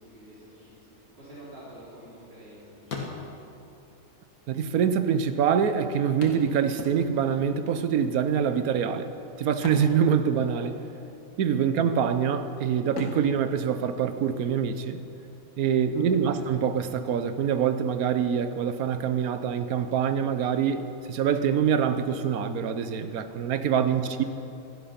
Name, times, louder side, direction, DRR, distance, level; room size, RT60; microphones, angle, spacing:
voice 1, 0.0-3.3 15.9-16.6 23.8-24.3, right 1 dB, 40° right, -9 dB, 4.0 m, -49 dB
sound 1, 1.5-2.5 2.8-3.6 4.5-4.6 4.9-5.0 6.2-7.4 9.4-10.8 11.0-11.3 11.8-12.4 12.9-14.6 16.6-16.7 17.1-17.2, left 3 dB, 85° left, 2.1 m, -40 dB
voice 2, 4.5-9.1 9.4-10.8 11.4-15.0 15.6-24.2, right 7 dB, 85° right, 10 dB, 1.3 m, -25 dB
15.5 x 12.5 x 5.9 m, 2.8 s
omnidirectional pair, 1.5 m